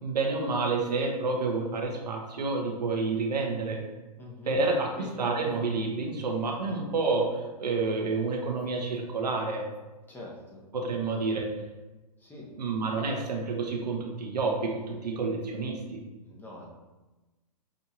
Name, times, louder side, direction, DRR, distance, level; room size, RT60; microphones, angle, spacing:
voice 1, 0.0-3.8 4.5-4.9 5.2-9.6 10.7-11.5 12.6-16.0, right 3 dB, 90° right, 1 dB, 0.9 m, -29 dB
voice 2, 4.2-4.5 4.9-5.1 10.1-10.6 12.2-12.5 16.3-16.7, left 2 dB, 10° left, -4 dB, 0.9 m, -44 dB
6.1 x 2.6 x 2.9 m, 1.1 s
hypercardioid pair, 130°, 20 cm